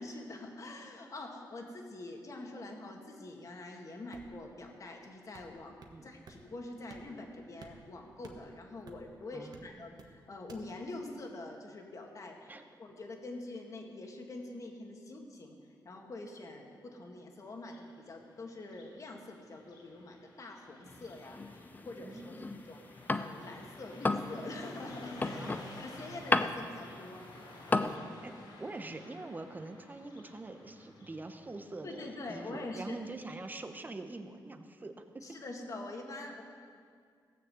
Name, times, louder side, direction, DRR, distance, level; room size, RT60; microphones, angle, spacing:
voice 1, 0.0-15.6 15.8-25.5 25.7-28.0 31.8-33.0 35.2-36.4, left 2 dB, 45° left, 1 dB, 2.0 m, -45 dB
sound 1, 4.1-4.5 5.3-6.0 6.3-6.4 6.9-7.3 7.6-9.1 9.5-10.2 10.5-10.7, right 4 dB, 60° right, 1.3 m, -54 dB
voice 2, 9.3-9.9 12.5-12.6 22.0-22.6 25.3-25.7 28.2-35.2, right 2 dB, 25° right, 7 dB, 1.0 m, -44 dB
Car passing by, 17.5-33.5, left 1 dB, 80° left, 3.2 m, -53 dB
sound 2, 20.9-23.6 23.9-28.0, left 3 dB, 20° left, 0.6 m, -33 dB
17.0 x 6.7 x 7.8 m, 2.1 s
cardioid pair, 100°, 8 cm